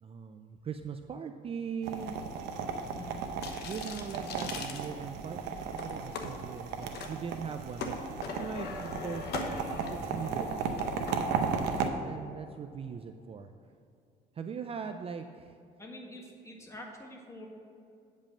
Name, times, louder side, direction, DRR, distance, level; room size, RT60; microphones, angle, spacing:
voice 1, 0.0-2.2 3.6-10.6 11.1-13.5 14.4-15.5, right 6 dB, 35° right, 7 dB, 0.4 m, -40 dB
sound 1, 1.8-11.9, right 5 dB, 90° right, 0.8 m, -35 dB
sound 2, 3.4-5.4 5.8-6.3 6.8-7.1 7.5-11.2, left 4 dB, 75° left, 1.0 m, -40 dB
voice 2, 15.8-17.5, left 1 dB, 15° left, 0 dB, 1.7 m, -46 dB
8.6 x 5.4 x 6.3 m, 2.5 s
cardioid pair, 110°, 17 cm